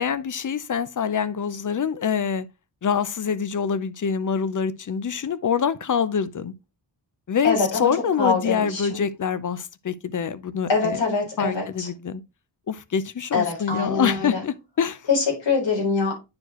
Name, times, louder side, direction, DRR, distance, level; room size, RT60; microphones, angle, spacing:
voice 1, 0.0-2.5 2.8-6.5 7.3-11.0 11.4-12.2 12.7-15.0, left 7 dB, 45° left, 0.6 m, -25 dB
voice 2, 7.4-9.1 10.7-11.9 13.3-14.4 15.1-16.1, left 4 dB, 80° left, 4.0 m, -24 dB
9.5 x 4.6 x 2.9 m
wide cardioid pair, 110°, 43 cm